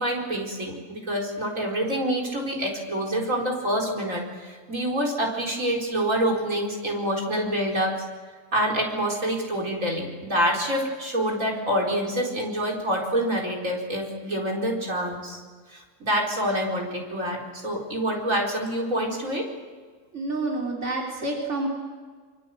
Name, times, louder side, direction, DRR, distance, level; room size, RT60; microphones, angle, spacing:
voice 1, 0.0-8.0 8.5-15.4 15.7-19.5, equal, 85° right, -1 dB, 4.8 m, -27 dB
voice 2, 20.1-21.7, right 2 dB, 65° right, -1 dB, 3.7 m, -28 dB
26.0 x 25.0 x 7.7 m, 1.5 s
omnidirectional pair, 1.3 m